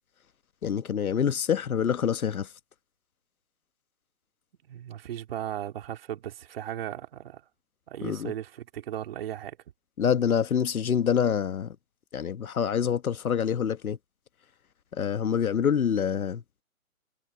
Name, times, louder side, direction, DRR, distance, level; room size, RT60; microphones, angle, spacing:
voice 1, 0.6-2.5 8.0-8.3 10.0-11.7 12.1-14.0 14.9-16.4, left 8 dB, 80° left, 1.5 m, -26 dB
voice 2, 4.7-7.4 7.9-9.6, right 11 dB, 40° right, 3.4 m, -36 dB
hypercardioid pair, 160°, 42 cm